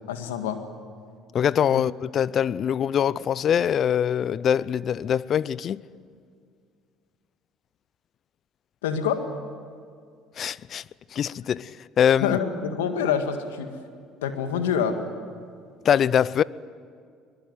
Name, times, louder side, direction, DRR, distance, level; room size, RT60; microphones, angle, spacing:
voice 1, 0.1-0.6 1.7-1.8 8.8-9.3 12.2-13.7 14.2-15.0, left 7 dB, 85° left, 1.9 m, -26 dB
voice 2, 1.3-5.8 10.4-10.8 11.1-12.4 15.8-16.4, left 9 dB, 50° left, 0.6 m, -23 dB
22.5 x 21.0 x 9.6 m
hypercardioid pair, 70°, 0 cm